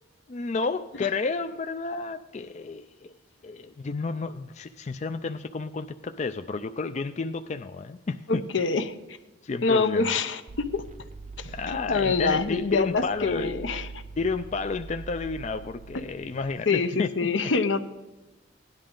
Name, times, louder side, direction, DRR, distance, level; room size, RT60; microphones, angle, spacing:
voice 1, 0.3-3.1 3.4-8.4 9.4-10.1 11.4-13.8 14.2-17.3, left 4 dB, 35° left, 8 dB, 0.4 m, -31 dB
voice 2, 8.3-8.9 9.6-10.9 11.4-13.9 16.7-17.8, left 4 dB, 75° left, 10 dB, 0.8 m, -25 dB
sound 1, 10.5-16.4, right 4 dB, 40° right, 0.6 m, -43 dB
17.0 x 10.5 x 3.8 m, 1.1 s
head